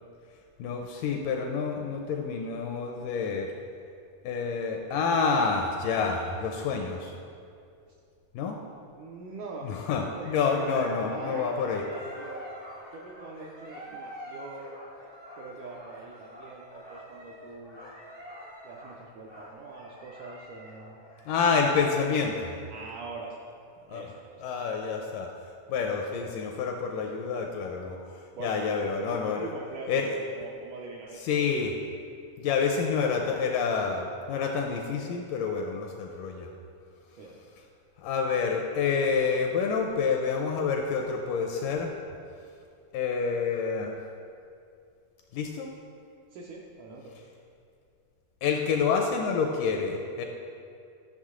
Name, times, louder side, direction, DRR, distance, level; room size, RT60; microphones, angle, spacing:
voice 1, 0.6-3.5 4.2-7.1 8.4-8.6 9.6-11.8 21.3-22.6 23.9-24.1 24.4-25.3 25.7-28.0 28.4-29.5 29.9-30.2 31.2-31.7 32.4-36.5 38.0-41.9 42.9-43.9 45.3-45.7 48.4-50.2, left 5 dB, 80° left, 2 dB, 1.9 m, -28 dB
voice 2, 9.0-9.7 10.1-12.5 12.9-14.8 15.4-17.8 18.6-21.0 22.7-23.3 23.9-24.7 28.3-31.5 37.1-37.4 46.3-47.1, right 3 dB, 80° right, -2 dB, 1.8 m, -42 dB
sound 1, 10.1-22.0, equal, 60° right, 0.4 m, -45 dB
11.5 x 6.0 x 3.7 m, 2.4 s
omnidirectional pair, 4.2 m